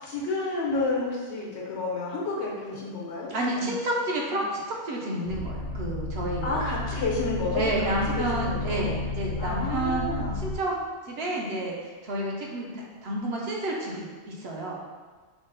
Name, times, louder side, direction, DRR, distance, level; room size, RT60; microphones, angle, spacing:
voice 1, 0.0-3.7 4.3-4.4 6.4-8.3 8.6-8.9 9.4-10.4, left 3 dB, 75° left, -4 dB, 1.1 m, -30 dB
voice 2, 3.3-6.6 7.5-10.0 10.4-10.8 11.0-14.8, right 1 dB, 65° right, -2 dB, 0.8 m, -30 dB
sound 1, 5.3-10.6, left 2 dB, 55° left, 0.5 m, -32 dB
3.6 x 2.0 x 3.9 m, 1.4 s
omnidirectional pair, 1.2 m